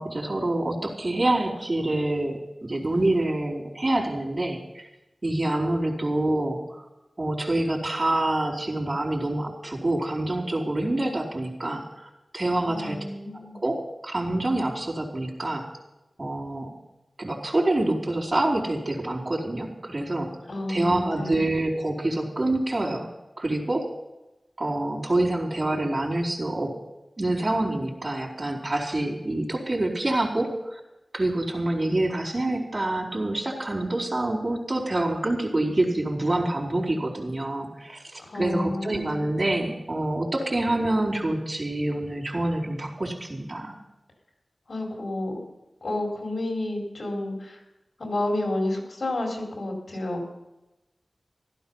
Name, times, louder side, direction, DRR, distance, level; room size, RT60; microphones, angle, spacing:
voice 1, 0.0-4.8 5.2-6.6 7.2-11.8 12.3-13.0 13.3-15.7 16.2-16.7 17.2-20.3 20.7-23.1 23.4-23.9 24.6-26.8 27.2-30.8 31.1-43.7, right 1 dB, 45° right, -1 dB, 4.3 m, -26 dB
voice 2, 12.6-13.6 20.5-21.4 38.3-39.3 44.7-45.3 45.8-47.6 48.0-50.2, left 1 dB, 75° left, 0 dB, 4.4 m, -30 dB
15.5 x 12.5 x 5.6 m, 0.98 s
wide cardioid pair, 50°, 0 cm